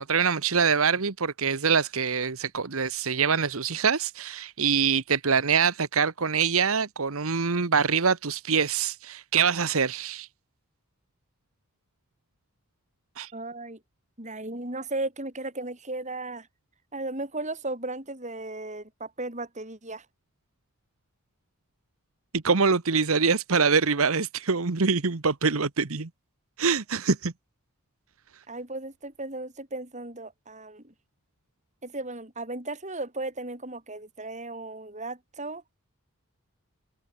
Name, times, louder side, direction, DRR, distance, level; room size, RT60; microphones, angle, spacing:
voice 1, 0.0-10.3 13.2-13.3 22.3-26.1 26.6-27.3, right 5 dB, 70° right, 1.1 m, -24 dB
voice 2, 13.3-13.8 14.2-16.5 16.9-20.1 28.5-30.9 31.8-35.6, right 2 dB, 30° right, 6.6 m, -35 dB
open air
head